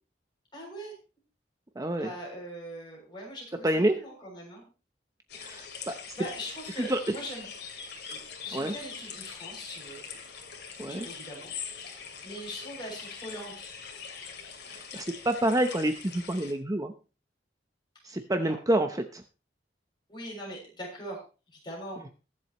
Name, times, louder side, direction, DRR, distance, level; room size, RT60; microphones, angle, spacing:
voice 1, 0.5-0.9 2.0-4.7 6.1-7.5 8.1-10.0 10.8-11.5 12.2-13.7 18.0-18.6 20.1-21.2 21.6-22.0, equal, 25° left, -2 dB, 7.0 m, -41 dB
voice 2, 1.8-2.1 3.6-4.0 5.4-5.9 6.8-7.0 8.5-8.7 10.8-11.1 14.7-16.9 18.0-19.2, right 1 dB, 20° right, 7 dB, 0.8 m, -28 dB
sound 1, 5.3-16.5, left 6 dB, 65° left, 2.7 m, -43 dB
22.0 x 7.7 x 3.1 m, 0.33 s
head